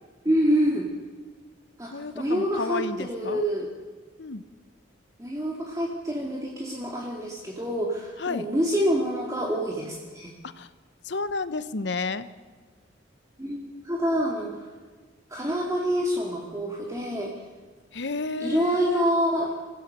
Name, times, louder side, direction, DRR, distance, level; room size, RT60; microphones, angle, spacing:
voice 1, 0.2-0.9 1.8-3.7 5.2-10.3 13.4-14.7 15.3-17.3 18.4-19.5, equal, 20° right, -1 dB, 2.1 m, -27 dB
voice 2, 1.9-3.4 4.2-4.4 8.2-8.5 10.4-10.7 11.0-12.3 17.9-19.1, left 3 dB, 65° left, 14 dB, 0.9 m, -31 dB
25.5 x 16.0 x 6.7 m, 1.5 s
head